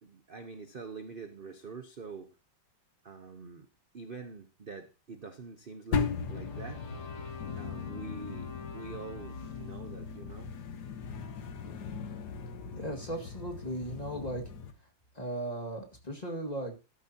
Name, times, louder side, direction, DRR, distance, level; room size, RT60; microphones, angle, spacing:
voice 1, 0.0-2.3 3.0-3.7 3.9-6.8 7.5-10.5 11.5-11.6, right 4 dB, 40° right, 8 dB, 0.9 m, -45 dB
sound 1, 5.9-14.7, left 5 dB, 60° left, 1.6 m, -38 dB
sound 2, 6.2-12.5, left 6 dB, 80° left, 2.6 m, -48 dB
voice 2, 12.7-14.4 15.2-16.8, right 1 dB, 20° left, 2 dB, 2.0 m, -37 dB
13.5 x 11.5 x 2.9 m, 0.31 s
omnidirectional pair, 2.1 m